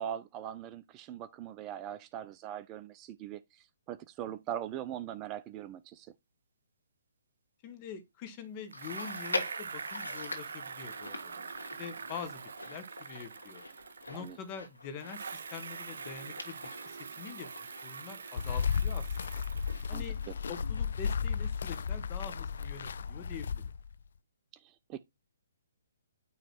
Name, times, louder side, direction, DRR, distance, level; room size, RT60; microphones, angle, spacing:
voice 1, 0.0-6.1 14.1-14.4 19.9-20.0 24.6-25.0, right 10 dB, 25° right, 0.4 m, -41 dB
voice 2, 7.6-13.6 14.1-16.6 16.8-17.5 17.8-19.4 19.9-20.2 20.5-23.6, left 6 dB, 30° left, 1.4 m, -45 dB
Chewing mastication, 8.7-22.3 22.6-22.7 23.5-23.6, left 2 dB, 90° left, 1.7 m, -44 dB
Bicycle, 8.7-14.6 15.0-20.2, right 5 dB, 65° right, 0.7 m, -44 dB
sound 1, 18.4-23.9, left 6 dB, 60° left, 0.3 m, -34 dB
9.2 x 3.1 x 4.4 m
figure-of-eight pair, 130°, 0 cm